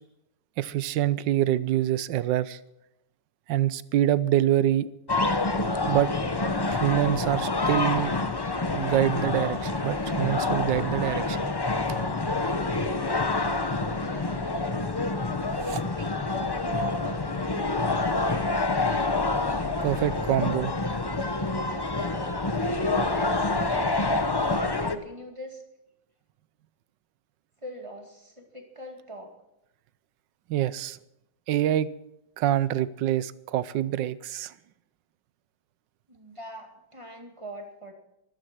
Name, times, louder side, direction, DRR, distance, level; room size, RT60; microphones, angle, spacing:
voice 1, 0.6-2.6 3.5-4.9 5.9-6.1 6.7-8.1 8.7-11.5 15.6-15.8 19.8-20.7 30.5-31.0 31.5-31.9 32.4-34.5, right 12 dB, 80° right, 17 dB, 1.4 m, -25 dB
sound 1, 5.1-25.0, left 3 dB, 30° left, 0.4 m, -27 dB
voice 2, 14.0-14.6 16.0-18.7 22.1-25.6 27.6-29.3 36.1-37.9, equal, 15° right, 3 dB, 2.1 m, -43 dB
14.0 x 13.5 x 6.2 m, 0.85 s
omnidirectional pair, 1.9 m